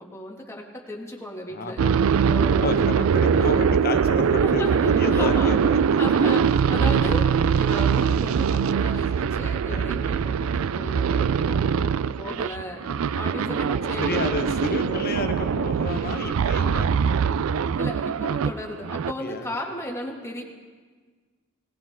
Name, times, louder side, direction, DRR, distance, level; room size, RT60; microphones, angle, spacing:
voice 1, 0.0-1.8 2.2-3.7 4.4-5.5 6.0-15.1 17.8-20.4, left 1 dB, 15° left, -1 dB, 2.1 m, -35 dB
voice 2, 1.5-2.0 2.6-6.3 9.6-9.9 12.9-13.1 14.0-16.9 19.2-19.5, left 2 dB, 45° left, 6 dB, 1.1 m, -31 dB
sound 1, 1.8-18.5 18.8-19.1, right 7 dB, 70° right, 0.4 m, -22 dB
19.5 x 17.5 x 3.7 m, 1.5 s
head